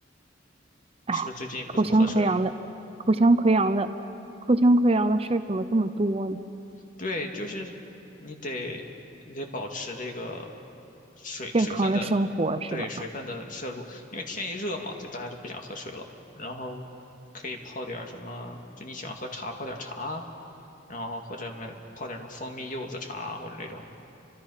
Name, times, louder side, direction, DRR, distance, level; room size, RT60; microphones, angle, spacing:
voice 1, 1.1-2.3 7.0-7.7 8.2-8.8 9.3-10.6 11.2-12.1 12.7-16.0 16.3-16.9 17.3-20.2 20.9-23.9, left 2 dB, 45° left, 2 dB, 2.3 m, -36 dB
voice 2, 1.8-2.5 3.1-3.9 4.5-6.4 11.5-12.8, right 2 dB, 30° right, 10 dB, 0.7 m, -22 dB
30.0 x 26.0 x 5.7 m, 2.8 s
head